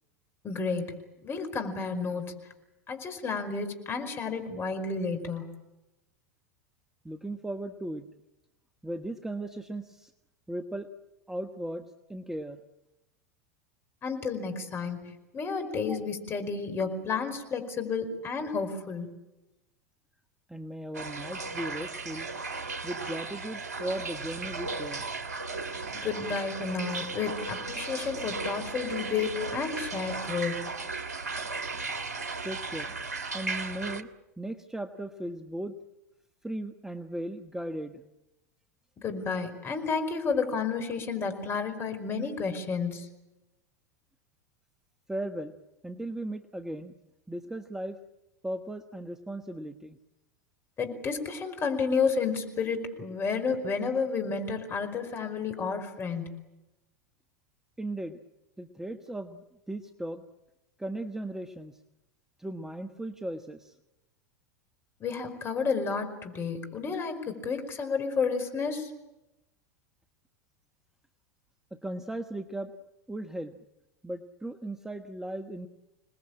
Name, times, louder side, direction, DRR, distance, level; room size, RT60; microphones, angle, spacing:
voice 1, 0.4-2.3 2.9-5.5 14.0-19.1 25.9-30.6 39.0-43.1 50.8-56.4 65.0-68.9, left 5 dB, 25° left, 7 dB, 5.0 m, -31 dB
voice 2, 7.0-8.0 8.8-10.1 10.5-10.9 11.3-12.6 15.9-16.0 20.5-22.3 22.8-25.0 32.4-32.9 33.3-34.1 34.4-35.8 36.4-38.0 45.1-45.5 45.8-46.9 47.3-48.0 48.4-50.0 57.8-58.2 58.6-60.2 60.8-61.8 62.4-63.7 71.7-72.7 73.1-73.6 74.0-75.7, right 1 dB, 5° right, 7 dB, 1.2 m, -37 dB
sound 1, 20.9-34.0, right 3 dB, 80° right, 1.7 m, -36 dB
27.5 x 20.0 x 8.9 m, 0.97 s
hypercardioid pair, 90°, 9 cm